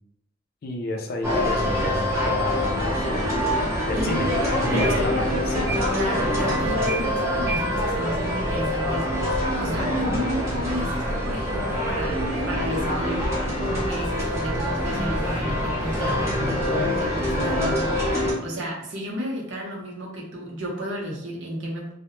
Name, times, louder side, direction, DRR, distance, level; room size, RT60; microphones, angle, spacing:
voice 1, 0.6-3.3 3.9-4.3 4.6-5.7, left 1 dB, 45° left, 2 dB, 0.3 m, -30 dB
sound 1, 1.2-18.3, equal, 15° right, 0.5 m, -25 dB
voice 2, 4.7-5.1 5.9-9.1 9.6-13.2 13.6-21.9, equal, 65° right, -2 dB, 0.7 m, -32 dB
2.1 x 2.0 x 2.9 m, 0.77 s
head